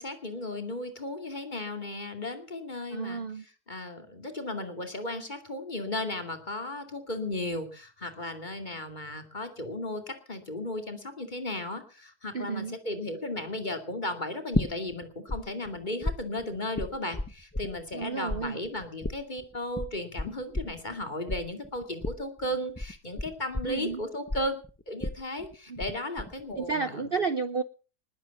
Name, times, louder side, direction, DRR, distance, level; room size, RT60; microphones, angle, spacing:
voice 1, 0.0-3.2 3.7-24.6 24.9-27.0, left 1 dB, 30° left, 7 dB, 2.6 m, -35 dB
voice 2, 2.9-3.4 12.3-12.8 17.9-18.6 23.6-24.0 25.7-25.8 26.5-27.6, right 4 dB, 45° right, 12 dB, 0.9 m, -31 dB
sound 1, 14.5-15.4 15.7-18.0 18.3-25.9 26.2-26.7, left 2 dB, 10° left, 0.6 m, -33 dB
20.5 x 8.7 x 7.1 m, 0.39 s
omnidirectional pair, 1.7 m